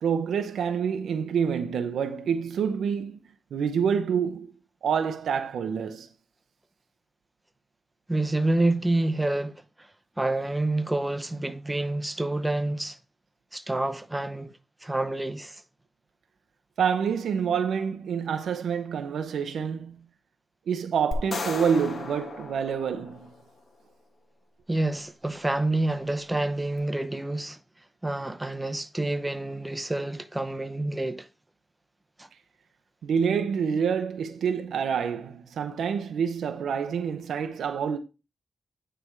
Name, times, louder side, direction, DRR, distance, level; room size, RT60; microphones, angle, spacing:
voice 1, 0.0-3.2 3.5-4.5 4.8-6.1 16.8-20.1 20.7-23.3 33.0-38.0, right 7 dB, 90° right, 0.6 m, -27 dB
voice 2, 8.1-9.9 10.2-13.0 13.5-14.5 14.8-15.6 24.7-27.6 28.0-31.3 32.2-32.3, right 2 dB, 15° right, 0.6 m, -28 dB
sound 1, 21.1-23.5, left 3 dB, 65° left, 1.3 m, -35 dB
9.3 x 3.3 x 4.6 m
cardioid pair, 80°, 0 cm